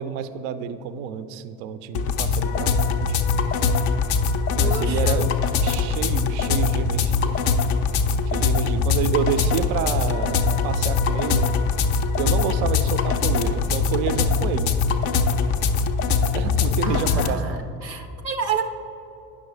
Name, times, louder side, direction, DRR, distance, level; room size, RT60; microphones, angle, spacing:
voice 1, 0.0-3.2 4.6-5.3 5.6-7.4 8.3-11.4 12.2-14.7 16.3-17.7, right 8 dB, 40° right, 12 dB, 0.4 m, -29 dB
sound 1, 1.9-17.3, left 5 dB, 35° left, 0.4 m, -22 dB
voice 2, 4.6-5.2 16.8-18.6, right 6 dB, 90° right, 7 dB, 0.6 m, -30 dB
9.6 x 6.1 x 3.2 m, 2.9 s
figure-of-eight pair, 60°, 50 cm